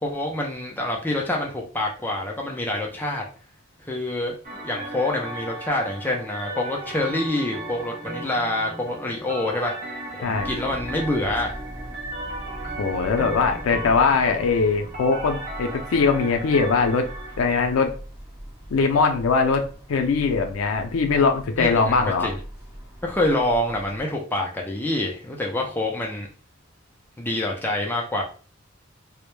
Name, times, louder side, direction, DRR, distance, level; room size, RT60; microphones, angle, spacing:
voice 1, 0.0-3.2 3.9-9.7 10.2-11.6 21.6-22.4 23.0-26.3 27.2-28.2, left 1 dB, 10° left, -1 dB, 0.4 m, -26 dB
sound 1, 4.4-17.4, right 2 dB, 40° right, 0.6 m, -36 dB
voice 2, 10.2-10.5 12.8-17.1 17.4-17.9 18.7-19.6 19.9-22.3, left 4 dB, 80° left, 4 dB, 0.4 m, -21 dB
sound 2, 10.3-24.0, equal, 10° right, 0.9 m, -40 dB
2.1 x 2.0 x 3.0 m, 0.38 s
head